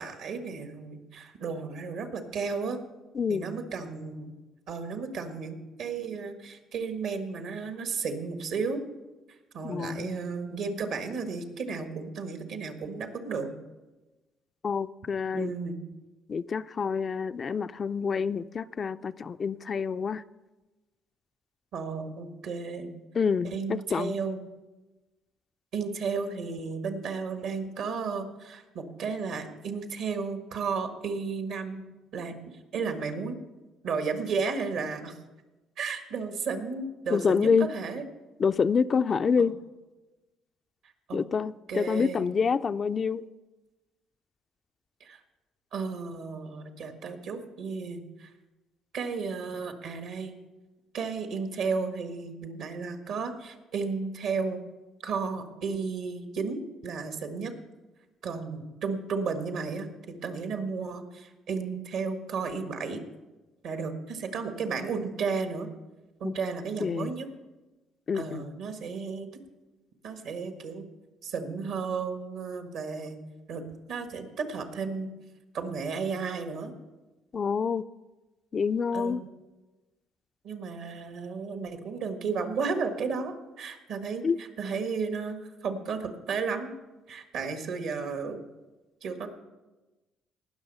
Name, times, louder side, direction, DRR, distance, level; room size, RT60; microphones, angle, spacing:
voice 1, 0.0-2.8 3.3-4.3 4.7-8.8 9.5-13.5 15.3-15.8 21.7-22.9 23.4-24.4 25.7-31.8 32.1-32.4 32.7-33.4 33.8-35.2 35.8-38.0 41.1-41.2 41.7-42.3 45.0-45.2 45.7-48.3 48.9-50.3 50.9-54.6 55.0-57.5 58.2-63.0 63.6-65.7 66.2-67.3 68.1-69.3 70.0-70.8 71.2-73.2 73.5-75.1 75.5-76.7 78.9-79.3 80.4-86.7 87.1-88.4 89.0-89.3, right 5 dB, 75° right, 1.6 m, -33 dB
voice 2, 9.6-10.3 14.6-15.5 16.3-20.2 23.2-24.1 37.1-37.7 38.4-39.6 41.1-43.2 66.2-66.3 66.8-67.1 68.1-68.4 77.3-77.8 78.5-79.2 84.2-84.4, left 6 dB, 45° left, 0.4 m, -27 dB
18.5 x 6.3 x 5.5 m
supercardioid pair, 70°, 0 cm